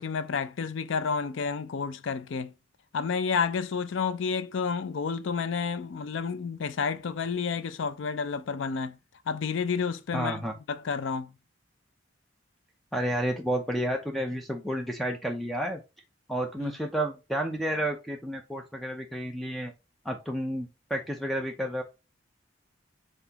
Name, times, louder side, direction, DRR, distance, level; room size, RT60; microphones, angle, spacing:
voice 1, 0.0-2.5 2.9-9.0 9.3-11.3 16.6-16.8, left 5 dB, 75° left, 0.4 m, -30 dB
voice 2, 10.1-10.5 12.9-15.8 16.3-19.7 20.0-21.8, equal, ahead, 0.4 m, -31 dB
4.1 x 3.8 x 2.7 m
head